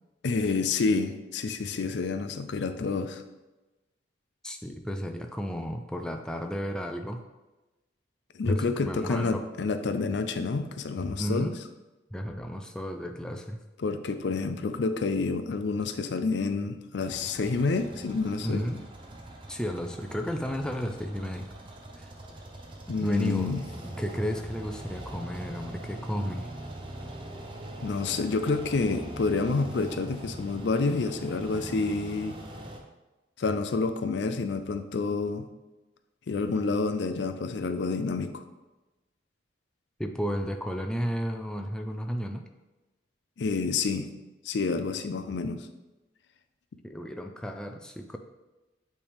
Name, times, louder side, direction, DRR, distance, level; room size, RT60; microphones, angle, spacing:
voice 1, 0.2-3.2 8.4-11.6 13.8-18.6 22.9-23.7 27.8-32.4 33.4-35.5 36.3-38.4 43.4-44.1 44.4-45.7, left 4 dB, 70° left, 9 dB, 0.4 m, -28 dB
voice 2, 4.4-7.2 8.5-9.4 11.2-11.6 12.1-13.6 18.4-18.8 19.5-21.5 22.0-22.1 23.0-23.7 24.0-26.5 40.0-42.4 46.8-48.2, equal, 5° left, 4 dB, 0.3 m, -33 dB
sound 1, 17.0-32.8, right 1 dB, 25° right, 0.7 m, -42 dB
8.5 x 3.3 x 3.4 m, 1.1 s
head